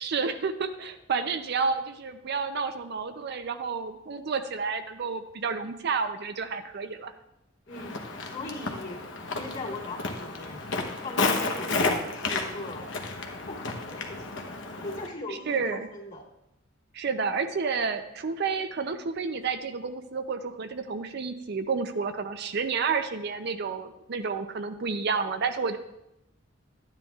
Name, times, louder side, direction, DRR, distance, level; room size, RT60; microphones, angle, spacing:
voice 1, 0.0-7.1 15.3-15.9 16.9-25.8, right 5 dB, 60° right, 8 dB, 0.5 m, -30 dB
Walk footsteps, 7.7-15.1, left 3 dB, 70° left, 1.0 m, -32 dB
voice 2, 7.7-8.0 8.2-10.7 11.0-12.9 13.5-14.3 14.8-16.2, left 2 dB, 45° left, -6 dB, 2.3 m, -39 dB
12.5 x 9.6 x 2.4 m, 0.86 s
head